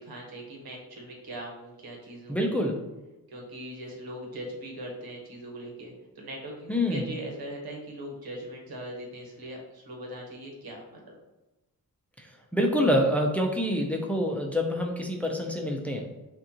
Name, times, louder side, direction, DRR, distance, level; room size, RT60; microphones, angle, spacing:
voice 1, 0.0-2.4 3.3-11.1, right 1 dB, 90° right, -1 dB, 1.3 m, -40 dB
voice 2, 2.3-2.8 6.7-7.0 12.2-16.0, equal, 5° left, 1 dB, 0.6 m, -26 dB
6.2 x 2.5 x 2.9 m, 1.0 s
wide cardioid pair, 125°, 36 cm